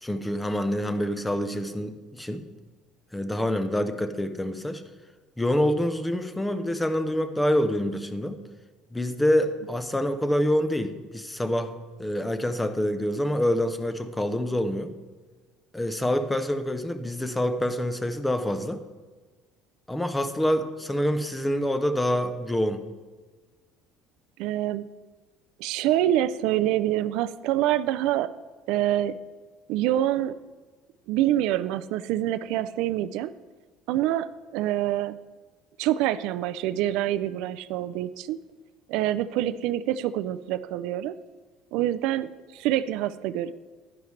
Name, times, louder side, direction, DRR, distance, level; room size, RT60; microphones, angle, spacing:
voice 1, 0.0-2.5 3.1-4.8 5.4-8.4 8.9-11.7 12.0-14.9 15.7-18.8 19.9-22.8, left 1 dB, 5° left, 10 dB, 0.6 m, -26 dB
voice 2, 24.4-24.9 25.6-28.3 28.7-29.2 29.7-30.3 31.1-33.3 33.9-35.2 35.8-38.4 38.9-41.1 41.7-43.5, right 13 dB, 70° right, 14 dB, 0.4 m, -26 dB
10.5 x 10.5 x 3.2 m, 1.3 s
cardioid pair, 145°, 0 cm